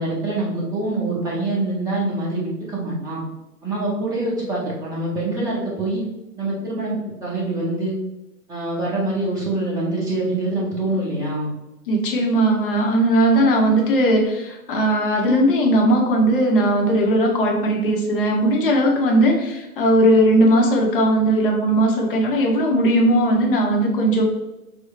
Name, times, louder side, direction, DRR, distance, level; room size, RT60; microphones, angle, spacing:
voice 1, 0.0-3.2 3.6-6.0 6.4-8.0 8.5-11.5, right 2 dB, 10° right, -6 dB, 0.9 m, -25 dB
voice 2, 11.9-24.2, right 1 dB, 35° left, 0 dB, 1.0 m, -18 dB
6.2 x 2.4 x 3.2 m, 0.99 s
figure-of-eight pair, 120°, 45 cm